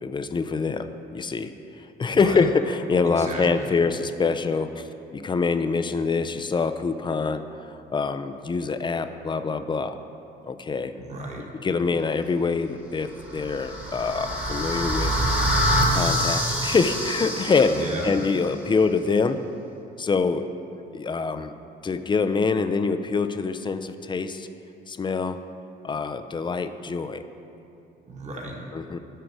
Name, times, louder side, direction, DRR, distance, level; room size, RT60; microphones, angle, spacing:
voice 1, 0.0-7.5 7.9-10.0 10.4-10.9 11.6-15.2 15.9-19.4 20.0-20.5 20.9-21.5 21.8-24.5 24.9-25.4 25.8-27.2 28.7-29.0, left 4 dB, 25° left, 10 dB, 0.4 m, -25 dB
voice 2, 2.1-2.4 3.0-3.8 10.9-11.5 17.6-18.1 28.1-28.6, right 1 dB, 35° right, -1 dB, 1.4 m, -35 dB
sound 1, 13.2-18.3, equal, 10° right, 1.2 m, -25 dB
8.9 x 5.0 x 4.7 m, 2.9 s
cardioid pair, 90°, 20 cm